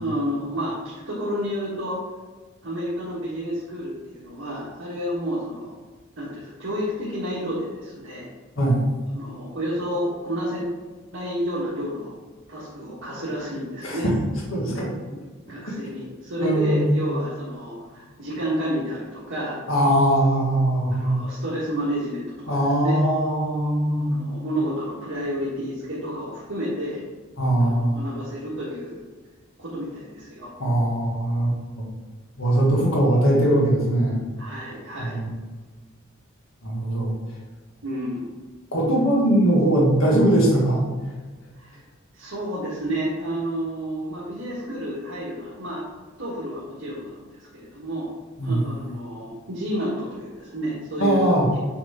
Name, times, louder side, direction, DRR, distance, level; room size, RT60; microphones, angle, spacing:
voice 1, 0.0-2.0 2.6-5.7 6.2-8.3 9.1-10.7 11.1-12.1 12.5-14.1 15.5-19.6 20.9-23.0 24.0-27.0 27.6-29.0 29.6-30.5 34.4-35.2 37.8-38.4 41.6-41.8 42.1-45.8 46.2-48.1 48.4-51.6, equal, 85° right, -9 dB, 1.6 m, -30 dB
voice 2, 13.8-14.2 14.5-14.9 15.7-15.8 16.4-17.0 19.7-21.2 22.5-24.3 27.4-27.9 30.6-31.9 32.4-34.2 35.0-35.3 36.6-37.1 38.7-40.8 48.4-48.7 51.0-51.5, right 1 dB, 75° left, -3 dB, 1.8 m, -21 dB
7.2 x 3.9 x 3.6 m, 1.3 s
head